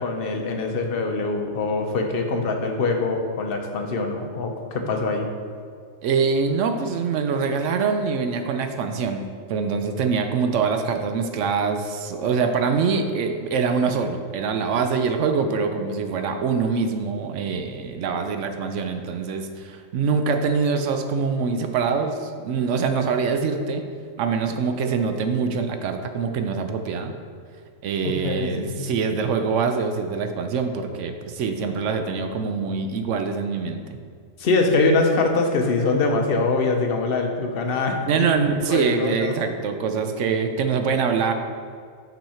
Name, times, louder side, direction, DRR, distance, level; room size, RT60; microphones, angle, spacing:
voice 1, 0.0-5.3 28.2-28.9 34.4-38.2 38.7-39.4, left 3 dB, 50° left, 3 dB, 0.8 m, -23 dB
voice 2, 6.0-9.2 9.5-23.8 24.2-27.1 27.8-33.8 38.1-41.3, right 5 dB, 65° right, 6 dB, 0.9 m, -24 dB
6.0 x 5.5 x 4.2 m, 2.2 s
omnidirectional pair, 1.5 m